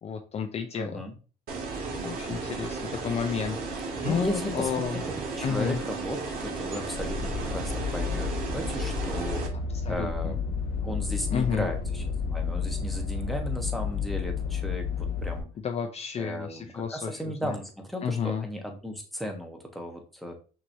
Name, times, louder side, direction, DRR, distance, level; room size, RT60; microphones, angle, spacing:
voice 1, 0.0-1.0 2.0-3.6 4.0-5.0 5.4-5.8 9.8-10.3 11.3-11.7 15.6-17.5 18.0-18.5, left 7 dB, 40° left, 4 dB, 0.5 m, -31 dB
voice 2, 0.7-1.1 4.0-5.0 5.4-9.4 9.9-10.5 10.8-12.0 12.3-15.5 16.2-20.4, equal, ahead, 2 dB, 1.1 m, -35 dB
sound 1, 1.5-9.5, right 4 dB, 60° right, 1.8 m, -34 dB
sound 2, 6.9-15.4, left 5 dB, 80° left, 1.0 m, -31 dB
6.0 x 3.1 x 2.6 m, 0.36 s
cardioid pair, 110°, 17 cm